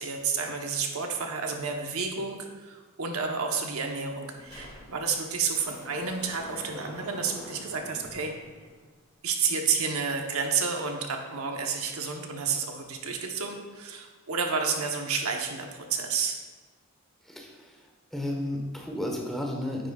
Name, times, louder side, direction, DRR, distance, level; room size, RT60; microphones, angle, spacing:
voice 1, 0.0-8.3 9.2-16.4, right 5 dB, 75° right, 3 dB, 1.0 m, -30 dB
Sliding door, 3.6-3.8 4.1-9.1, left 1 dB, 20° left, 2.1 m, -46 dB
voice 2, 17.3-17.8 18.1-19.9, left 1 dB, ahead, 0 dB, 1.0 m, -33 dB
9.8 x 8.8 x 2.3 m, 1.3 s
head